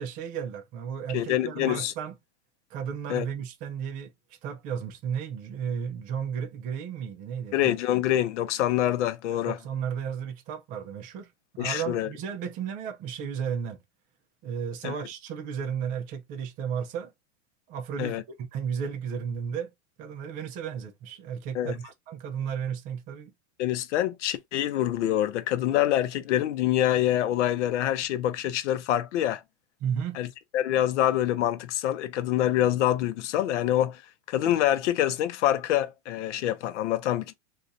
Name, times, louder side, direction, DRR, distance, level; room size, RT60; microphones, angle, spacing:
voice 1, 0.0-2.1 2.7-4.1 4.4-7.8 9.4-11.3 11.5-13.8 14.4-17.1 17.7-19.7 20.0-23.3 29.8-30.2, right 7 dB, 25° right, 0.4 m, -33 dB
voice 2, 1.1-1.9 3.1-3.3 7.5-9.6 11.6-12.1 14.8-14.9 18.0-18.2 21.5-21.7 23.6-29.4 30.2-30.3 30.5-34.0 34.3-37.3, left 12 dB, 80° left, 0.6 m, -26 dB
2.5 x 2.3 x 3.9 m
supercardioid pair, 150°, 35 cm